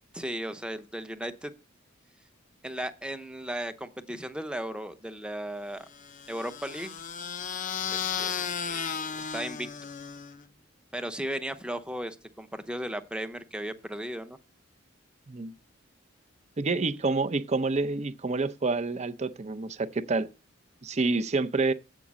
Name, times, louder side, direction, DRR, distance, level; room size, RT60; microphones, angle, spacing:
voice 1, 0.1-1.5 2.6-5.9 6.3-7.0 7.9-9.9 10.9-14.4, right 1 dB, 5° right, 0.7 m, -36 dB
sound 1, 5.9-10.5, left 7 dB, 40° left, 0.6 m, -34 dB
voice 2, 16.6-20.3 20.8-21.7, right 3 dB, 35° right, 0.6 m, -28 dB
8.3 x 4.9 x 7.4 m
head